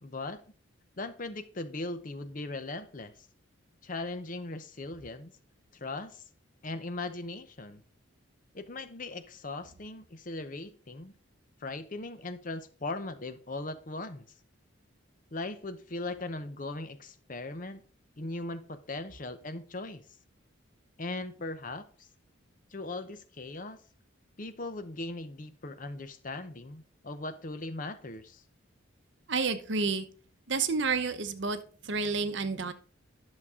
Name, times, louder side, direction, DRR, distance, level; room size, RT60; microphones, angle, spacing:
voice 1, 0.0-0.4 1.0-3.3 3.8-5.3 5.7-6.2 6.6-7.8 8.5-11.1 11.6-14.3 15.3-17.8 18.2-20.0 21.0-22.1 22.7-23.8 24.4-28.4, left 2 dB, 40° left, 11 dB, 0.7 m, -39 dB
voice 2, 29.3-30.1 30.5-32.7, right 4 dB, 60° right, 10 dB, 0.8 m, -30 dB
11.0 x 6.5 x 3.7 m, 0.41 s
head